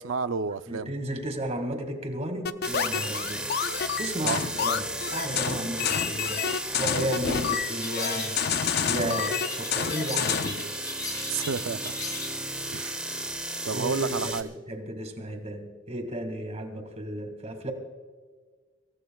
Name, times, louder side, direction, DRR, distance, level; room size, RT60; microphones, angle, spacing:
voice 1, 0.0-0.9 4.2-4.4 5.6-5.8 9.0-9.2 11.3-11.9 12.7-13.0 13.7-14.5, right 5 dB, 90° right, 0.5 m, -31 dB
voice 2, 0.7-3.5 4.0-6.4 6.8-8.4 8.9-10.7 13.7-17.7, right 1 dB, 35° right, 2.0 m, -33 dB
sound 1, 2.5-10.6, left 7 dB, 55° left, 0.5 m, -29 dB
sound 2, 2.6-14.4, right 1 dB, 5° right, 1.0 m, -34 dB
sound 3, 7.7-8.4 9.1-12.4, left 3 dB, 20° left, 1.8 m, -38 dB
27.5 x 14.5 x 2.3 m
head